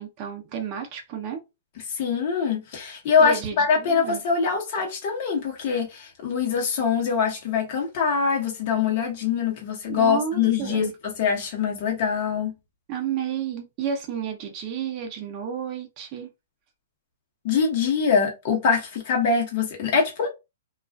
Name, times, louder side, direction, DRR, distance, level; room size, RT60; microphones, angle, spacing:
voice 1, 0.0-1.4 3.2-4.2 9.9-10.9 12.9-16.3, right 8 dB, 35° right, 0.6 m, -31 dB
voice 2, 1.9-12.5 17.4-20.3, left 6 dB, 50° left, 0.9 m, -23 dB
2.3 x 2.3 x 2.3 m
hypercardioid pair, 145°, 0 cm